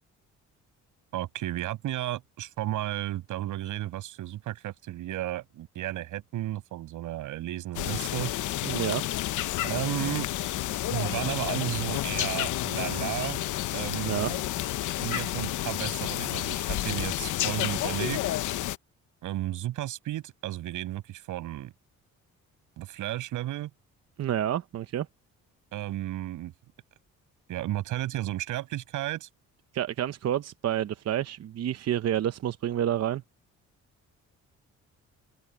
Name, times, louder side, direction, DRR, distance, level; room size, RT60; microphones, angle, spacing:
voice 1, 1.1-8.3 9.6-10.3 10.9-13.4 13.7-14.4 15.0-18.2 19.2-21.7 22.8-23.7 25.7-26.5 27.5-29.3, right 14 dB, 85° right, 7.2 m, -33 dB
sound 1, 7.7-18.8, left 14 dB, 80° left, 0.9 m, -30 dB
voice 2, 8.6-9.0 14.0-14.3 24.2-25.1 29.7-33.2, right 11 dB, 55° right, 0.8 m, -29 dB
open air
cardioid pair, 90°, 30 cm